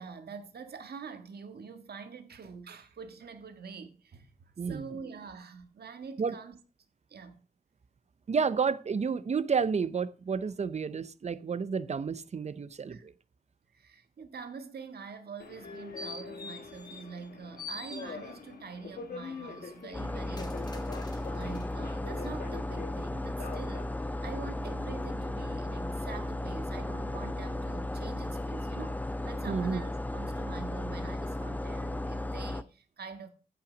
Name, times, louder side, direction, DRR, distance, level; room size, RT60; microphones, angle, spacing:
voice 1, 0.0-6.6 7.1-7.4 12.9-13.1 13.7-20.8 21.3-33.3, right 5 dB, 85° right, 1.7 m, -45 dB
voice 2, 4.6-4.9 6.2-6.3 8.3-13.1 29.5-29.8, right 5 dB, 45° right, 0.6 m, -30 dB
Subway metro underground, 15.4-25.1, left 5 dB, 70° left, 1.4 m, -46 dB
sound 1, 15.4-17.3 17.6-18.6 19.1-21.7 22.2-22.3, left 2 dB, 25° left, 1.6 m, -47 dB
sound 2, 19.9-32.6, left 1 dB, 10° left, 0.5 m, -35 dB
14.5 x 5.8 x 5.1 m
wide cardioid pair, 150°, 16 cm